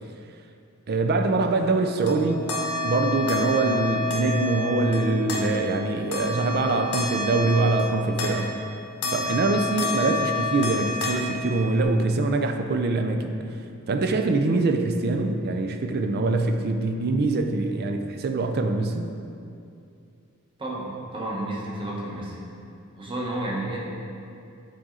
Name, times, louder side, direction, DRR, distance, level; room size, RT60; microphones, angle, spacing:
voice 1, 0.9-2.4 2.8-8.5 9.1-13.4 13.9-19.1, right 3 dB, 45° right, 6 dB, 0.4 m, -24 dB
sound 1, 1.6-8.7 9.0-11.8, left 2 dB, 85° left, 1.0 m, -30 dB
voice 2, 20.6-22.4 23.0-23.8, right 1 dB, 25° right, -4 dB, 1.0 m, -31 dB
7.5 x 4.2 x 3.8 m, 2.5 s
head